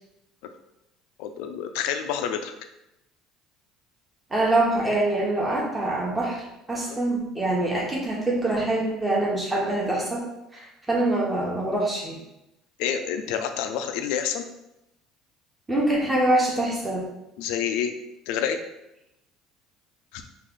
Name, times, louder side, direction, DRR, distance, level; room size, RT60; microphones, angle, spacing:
voice 1, 1.2-2.5 6.9-7.0 12.8-14.5 17.4-17.9 18.3-18.6 20.1-20.2, left 8 dB, 80° left, 7 dB, 0.4 m, -28 dB
voice 2, 4.3-6.4 6.7-10.2 10.9-12.2 15.7-17.0, right 1 dB, 10° right, -4 dB, 1.0 m, -24 dB
3.2 x 2.4 x 3.7 m, 0.89 s
cardioid pair, 120°, 0 cm